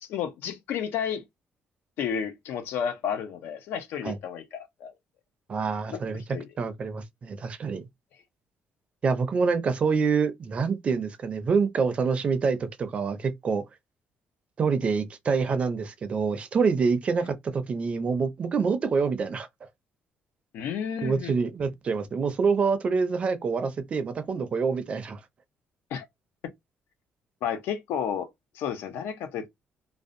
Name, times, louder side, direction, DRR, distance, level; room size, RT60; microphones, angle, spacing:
voice 1, 0.0-1.2 2.0-4.9 5.9-6.5 20.5-21.4 25.9-26.1 27.4-28.3 28.5-29.5, left 8 dB, 85° left, 0.5 m, -32 dB
voice 2, 5.5-6.2 6.6-7.9 9.0-13.7 14.6-19.5 21.0-25.2, right 5 dB, 35° right, 0.4 m, -26 dB
2.6 x 2.0 x 2.5 m
cardioid pair, 145°, 4 cm